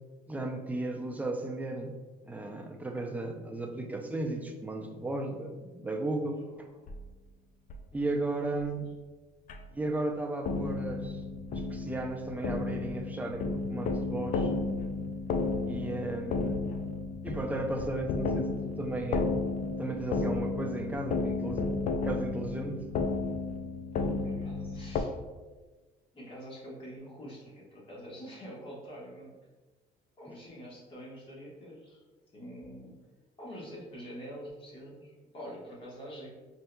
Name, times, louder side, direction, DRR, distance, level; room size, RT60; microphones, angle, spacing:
voice 1, 0.3-1.9 2.2-6.4 7.9-8.9 9.7-11.2 11.5-14.5 15.6-16.6 17.2-19.3 19.8-22.8, right 2 dB, 10° right, 2 dB, 0.4 m, -35 dB
sound 1, 6.9-7.0 7.7-7.8 8.6-8.7 9.5-9.6 10.4-25.0, left 3 dB, 50° left, 0.4 m, -33 dB
voice 2, 24.0-25.2 26.1-29.3 30.2-32.0 32.3-32.9 33.4-36.3, equal, 30° left, -5 dB, 1.3 m, -46 dB
4.5 x 2.7 x 2.2 m, 1.2 s
cardioid pair, 110°, 17 cm